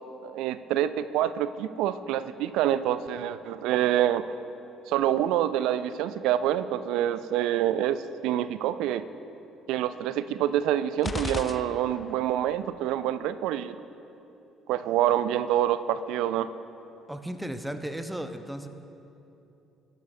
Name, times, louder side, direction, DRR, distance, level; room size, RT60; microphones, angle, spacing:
voice 1, 0.2-4.3 4.9-8.0 8.2-9.0 9.7-13.8 14.7-16.5, right 11 dB, 65° right, 13 dB, 0.3 m, -26 dB
sound 1, 11.0-12.3, left 4 dB, 30° left, 0.4 m, -35 dB
voice 2, 17.1-18.7, right 1 dB, 5° right, 8 dB, 0.8 m, -35 dB
19.0 x 9.1 x 2.7 m, 2.9 s
hypercardioid pair, 50°, 0 cm